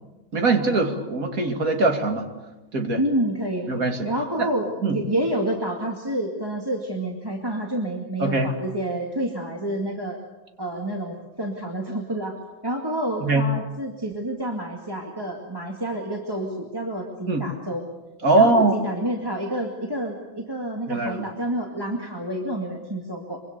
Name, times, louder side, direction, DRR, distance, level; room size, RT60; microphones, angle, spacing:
voice 1, 0.3-2.3 2.7-3.0 3.7-4.1 4.4-4.5 4.8-5.0 8.2-8.5 13.2-13.5 17.3-17.4 18.2-18.7 20.9-21.2, right 3 dB, 45° right, 4 dB, 2.8 m, -21 dB
voice 2, 3.0-3.7 4.0-10.2 10.6-12.3 12.6-17.8 18.3-23.4, right 1 dB, 10° right, 0 dB, 2.1 m, -28 dB
25.0 x 24.5 x 6.8 m, 1.1 s
omnidirectional pair, 2.2 m